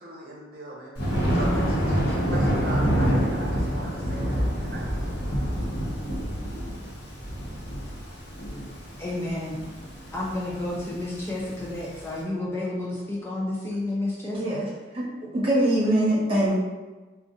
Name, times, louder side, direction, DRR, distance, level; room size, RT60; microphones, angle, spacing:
voice 1, 0.0-5.2, right 1 dB, 55° right, -4 dB, 0.7 m, -39 dB
Thunder, 0.9-12.1, equal, 65° left, 0.9 m, -27 dB
voice 2, 9.0-9.6 10.1-14.6, left 1 dB, 15° left, -5 dB, 0.4 m, -31 dB
voice 3, 14.3-14.7 14.9-15.0 15.3-16.6, right 1 dB, 30° right, -7 dB, 1.0 m, -22 dB
2.5 x 2.4 x 3.8 m, 1.2 s
head